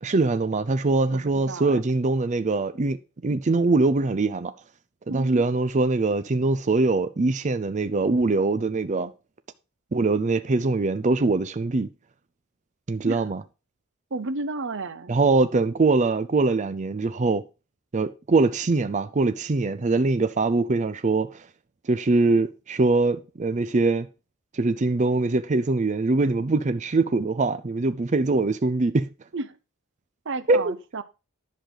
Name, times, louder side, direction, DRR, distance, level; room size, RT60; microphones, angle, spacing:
voice 1, 0.0-3.0 3.2-4.5 5.1-9.1 9.9-11.9 12.9-13.4 15.1-17.4 17.9-21.5 21.8-24.1 24.5-29.1 30.5-30.7, right 3 dB, 35° right, 0.5 m, -23 dB
voice 2, 1.1-1.8 5.1-5.4 13.0-13.2 14.1-15.2 29.3-29.6 30.2-31.0, right 3 dB, 60° right, 0.8 m, -32 dB
10.5 x 6.6 x 3.8 m
head